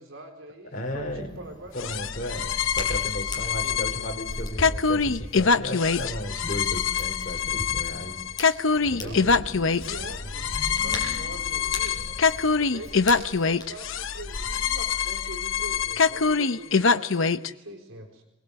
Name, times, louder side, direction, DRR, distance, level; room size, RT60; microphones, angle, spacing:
voice 1, 0.0-1.7 3.5-4.0 8.8-12.0 12.6-18.2, right 1 dB, 75° right, 3 dB, 4.0 m, -43 dB
voice 2, 0.7-1.4 1.7-8.2 8.9-9.2, left 1 dB, 40° left, 0 dB, 4.3 m, -35 dB
Hands, 0.8-14.8, left 1 dB, 20° left, 5.6 m, -39 dB
sound 1, 1.8-17.5, left 5 dB, 70° left, 0.9 m, -25 dB
sound 2, 8.8-13.1, equal, 40° right, 7.4 m, -42 dB
24.0 x 21.0 x 8.2 m, 0.89 s
head